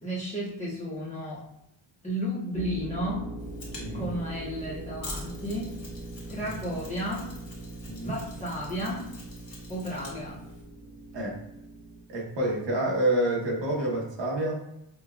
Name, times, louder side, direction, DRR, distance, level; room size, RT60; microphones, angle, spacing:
voice 1, 0.0-1.4 2.0-3.4 3.9-5.7 6.3-7.3 8.0-9.1 9.7-10.4, equal, 15° left, -8 dB, 1.0 m, -33 dB
sound 1, 2.5-12.0, right 2 dB, 10° right, 1.0 m, -41 dB
Mechanisms, 3.4-10.6, left 2 dB, 65° left, 1.4 m, -46 dB
voice 2, 3.8-4.1 6.4-6.5 7.9-8.1 11.1-11.3 12.1-14.6, right 1 dB, 65° right, -2 dB, 1.1 m, -28 dB
5.8 x 2.3 x 2.3 m, 0.82 s
wide cardioid pair, 170°, 47 cm